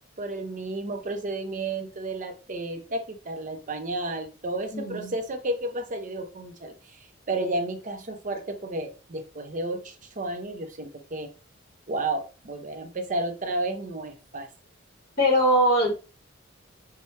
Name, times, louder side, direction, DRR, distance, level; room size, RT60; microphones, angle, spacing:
voice 1, 0.2-7.0 7.3-11.3 11.9-14.5, right 2 dB, 40° right, 6 dB, 0.7 m, -32 dB
voice 2, 4.7-5.1 15.2-15.9, equal, 55° left, 0 dB, 1.8 m, -21 dB
5.4 x 2.2 x 3.1 m, 0.33 s
head